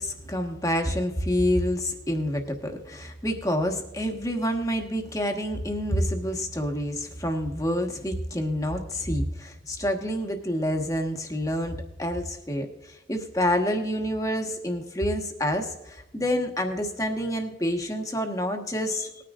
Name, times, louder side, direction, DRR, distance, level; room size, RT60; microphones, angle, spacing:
voice 1, 0.0-19.2, equal, 20° left, 3 dB, 1.3 m, -28 dB
20.0 x 9.9 x 2.4 m, 0.95 s
head